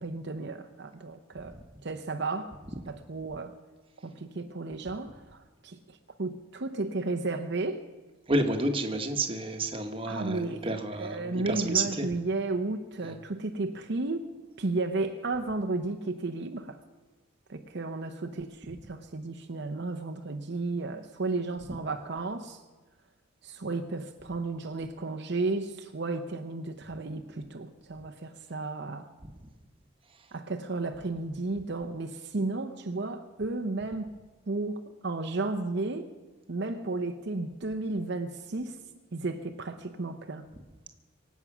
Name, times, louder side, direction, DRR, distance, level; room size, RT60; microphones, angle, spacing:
voice 1, 0.0-2.6 2.9-3.6 4.0-7.9 10.1-16.8 17.5-22.6 23.4-29.1 30.3-34.1 34.5-36.1 36.5-38.8 39.1-40.5, right 3 dB, 60° right, 6 dB, 0.8 m, -33 dB
voice 2, 8.3-12.0 13.1-13.2, right 2 dB, 25° right, 5 dB, 1.2 m, -30 dB
24.0 x 8.4 x 6.1 m, 1.2 s
head